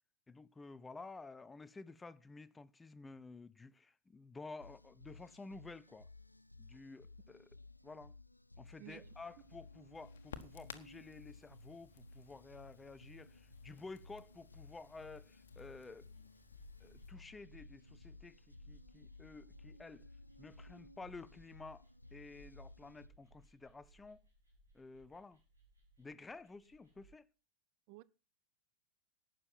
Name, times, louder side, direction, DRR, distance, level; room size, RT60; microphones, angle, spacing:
voice 1, 0.3-6.1 6.6-7.5 7.8-8.1 8.6-16.1 16.8-20.0 20.4-21.9 22.1-24.2 24.7-25.4 26.0-27.3, left 3 dB, 10° left, 0.7 m, -52 dB
sound 1, 4.6-23.1, left 3 dB, 85° left, 0.5 m, -58 dB
voice 2, 8.8-9.1 27.9-28.0, right 20 dB, 45° right, 0.6 m, -53 dB
Crackle, 8.9-17.1, left 8 dB, 60° left, 1.4 m, -58 dB
sound 2, 10.3-11.1 11.5-27.1, right 1 dB, 80° right, 6.2 m, -65 dB
12.0 x 9.2 x 5.8 m
figure-of-eight pair, 90°, 0 cm